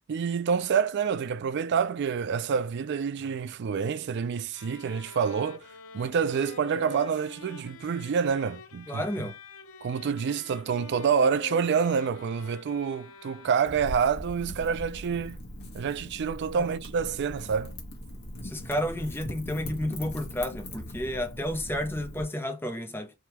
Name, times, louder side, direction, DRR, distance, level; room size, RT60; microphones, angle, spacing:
voice 1, 0.1-5.6 5.9-9.0 9.8-15.4 15.7-17.7, right 6 dB, 55° right, 0.4 m, -27 dB
sound 1, 4.5-14.0, left 5 dB, 80° left, 0.7 m, -46 dB
voice 2, 8.9-9.4 16.5-16.7 18.4-23.1, left 1 dB, 10° left, 0.7 m, -31 dB
Wind / Fire, 13.6-22.2, equal, 50° left, 1.2 m, -40 dB
3.5 x 2.3 x 2.8 m
head